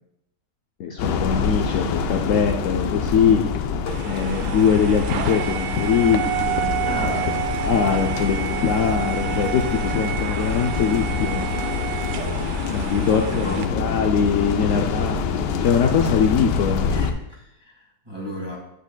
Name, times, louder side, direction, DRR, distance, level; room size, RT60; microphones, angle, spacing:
voice 1, 0.8-3.4 4.0-7.1 7.6-11.5 12.7-16.9, left 6 dB, 70° left, 4 dB, 0.7 m, -22 dB
sound 1, 1.0-17.1, left 6 dB, 90° left, 1.2 m, -26 dB
sound 2, 3.9-13.7, right 11 dB, 80° right, 1.2 m, -30 dB
voice 2, 6.9-7.4 12.7-12.9 13.3-14.1 16.9-18.6, equal, 15° right, -3 dB, 1.6 m, -33 dB
8.0 x 8.0 x 2.2 m, 0.81 s
omnidirectional pair, 1.8 m